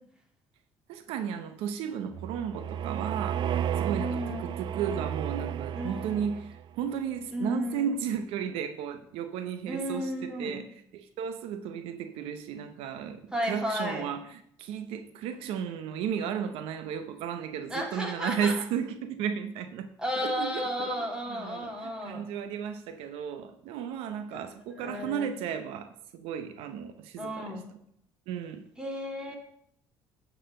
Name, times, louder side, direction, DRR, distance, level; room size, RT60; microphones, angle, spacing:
voice 1, 0.9-10.7 10.9-19.9 20.2-27.6 28.3-28.7, right 8 dB, 85° right, 0.8 m, -34 dB
sound 1, 2.1-6.7, right 9 dB, 55° right, 0.4 m, -33 dB
voice 2, 3.9-4.5 5.8-6.3 7.3-7.9 9.7-10.6 13.3-14.1 17.7-18.5 20.0-22.3 24.3-24.4 24.8-25.3 27.2-27.6 28.8-29.4, equal, 10° right, 2.5 m, -33 dB
10.5 x 4.2 x 6.6 m
supercardioid pair, 90°, 10 cm